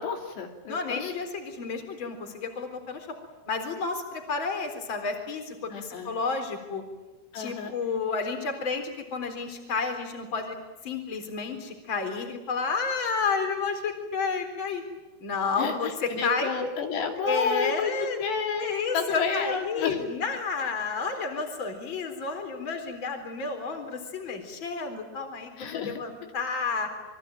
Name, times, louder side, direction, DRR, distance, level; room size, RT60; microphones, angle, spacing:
voice 1, 0.0-1.1 5.7-6.1 7.3-7.7 15.6-20.0 25.6-26.0, left 5 dB, 90° left, 3 dB, 5.1 m, -30 dB
voice 2, 0.7-3.1 3.5-6.8 7.3-10.5 10.8-14.8 15.2-16.5 17.2-18.2 18.6-26.9, left 4 dB, 30° left, 5 dB, 4.3 m, -31 dB
27.5 x 24.0 x 9.1 m, 1.1 s
omnidirectional pair, 4.7 m